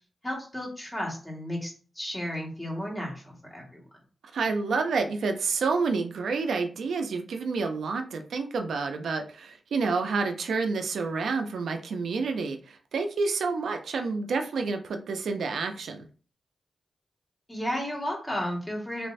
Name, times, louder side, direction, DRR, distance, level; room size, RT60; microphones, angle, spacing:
voice 1, 0.2-3.8 17.5-19.1, equal, 15° left, -2 dB, 1.6 m, -33 dB
voice 2, 4.3-16.1, right 4 dB, 85° right, 5 dB, 0.4 m, -29 dB
3.2 x 3.1 x 2.6 m, 0.38 s
cardioid pair, 60°, 0 cm